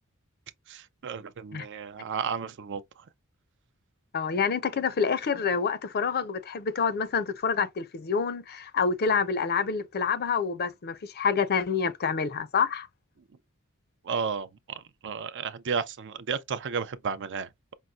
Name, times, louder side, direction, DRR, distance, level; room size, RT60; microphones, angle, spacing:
voice 1, 0.7-2.8 14.0-17.5, right 6 dB, 55° right, 0.5 m, -33 dB
voice 2, 4.1-12.9, left 5 dB, 45° left, 0.5 m, -27 dB
5.4 x 2.1 x 2.4 m
head